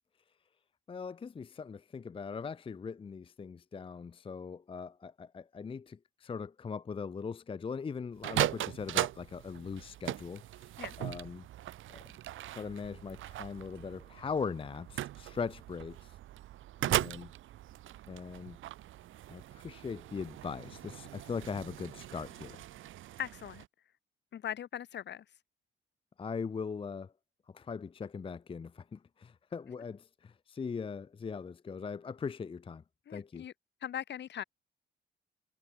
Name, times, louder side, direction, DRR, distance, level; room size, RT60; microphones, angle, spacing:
voice 1, 0.9-10.7 11.0-11.5 11.9-12.0 12.5-16.2 16.8-17.3 18.1-18.6 19.3-22.6 26.2-27.1 27.5-32.8 33.1-33.5, left 5 dB, 25° left, 0.6 m, -40 dB
sound 1, 8.2-23.7, right 14 dB, 80° right, 2.8 m, -39 dB
voice 2, 23.2-23.6 24.3-25.2 33.1-33.5 33.8-34.4, left 10 dB, 60° left, 1.8 m, -40 dB
cardioid pair, 90°, 20 cm